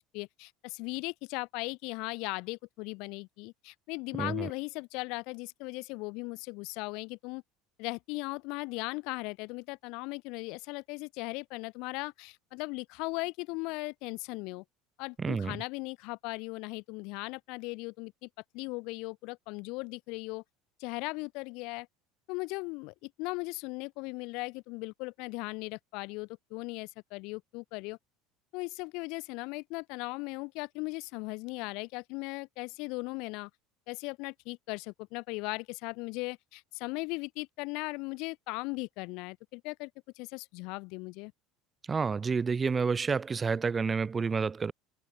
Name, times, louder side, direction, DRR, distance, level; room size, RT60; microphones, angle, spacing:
voice 1, 0.1-7.4 7.8-14.6 15.0-18.3 18.5-20.4 20.8-21.9 22.3-28.0 28.5-33.5 33.9-39.9 40.2-41.3, left 27 dB, 65° left, 0.9 m, -38 dB
voice 2, 15.2-15.6 41.9-44.7, right 5 dB, 20° right, 0.5 m, -29 dB
cardioid pair, 140°, 0 cm